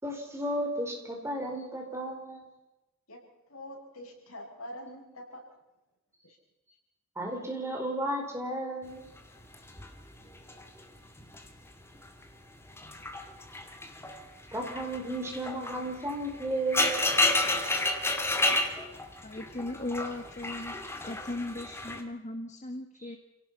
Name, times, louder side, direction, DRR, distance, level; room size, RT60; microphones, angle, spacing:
voice 1, 0.0-2.4 7.2-9.1 14.5-17.1, right 1 dB, 10° right, 2 dB, 4.6 m, -33 dB
voice 2, 3.5-5.4, left 1 dB, 80° left, 0 dB, 7.9 m, -44 dB
sound 1, 9.2-11.6 11.8-12.2 12.7-22.0, left 2 dB, 10° left, 2.2 m, -31 dB
voice 3, 19.2-20.8 21.0-23.2, left 2 dB, 35° left, 7 dB, 1.4 m, -37 dB
29.0 x 18.0 x 5.7 m, 0.97 s
head